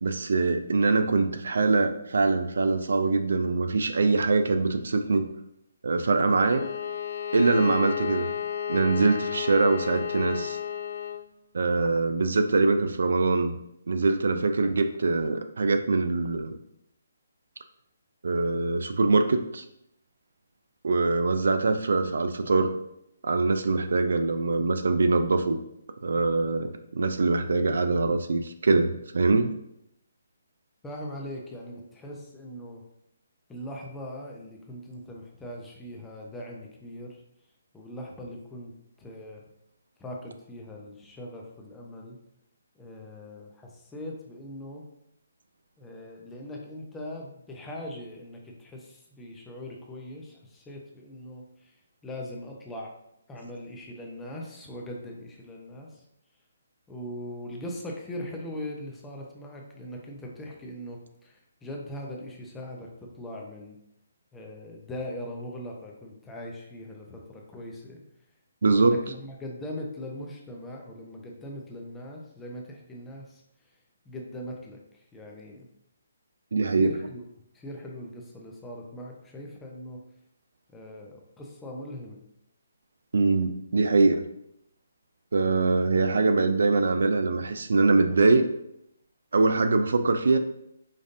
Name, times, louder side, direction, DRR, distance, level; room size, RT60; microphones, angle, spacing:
voice 1, 0.0-5.3 5.8-6.7 7.3-8.3 8.7-10.6 11.5-13.6 13.9-16.5 18.2-19.6 20.8-22.7 23.2-25.6 26.0-29.5 68.6-69.0 76.5-76.9 83.1-84.2 85.3-88.4 89.3-90.4, right 3 dB, 75° right, 8 dB, 0.4 m, -23 dB
Bowed string instrument, 6.3-11.3, left 9 dB, 55° left, 0.3 m, -32 dB
voice 2, 30.8-32.8 33.5-37.2 37.7-39.4 40.0-42.2 42.7-44.8 45.8-52.9 53.3-56.0 56.9-63.8 64.3-68.0 68.7-73.7 74.1-75.7 76.7-77.2 77.5-80.0 80.7-82.2, left 1 dB, 10° left, -1 dB, 0.6 m, -40 dB
5.2 x 2.5 x 2.5 m, 0.77 s
hypercardioid pair, 155°, 0 cm